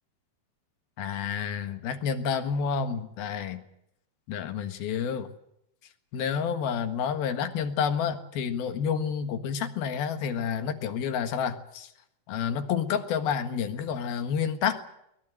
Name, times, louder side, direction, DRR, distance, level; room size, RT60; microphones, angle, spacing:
voice 1, 1.0-3.6 4.3-5.3 6.1-11.9 12.3-14.8, left 7 dB, 75° left, 8 dB, 3.4 m, -29 dB
22.5 x 19.5 x 7.8 m, 0.76 s
omnidirectional pair, 4.5 m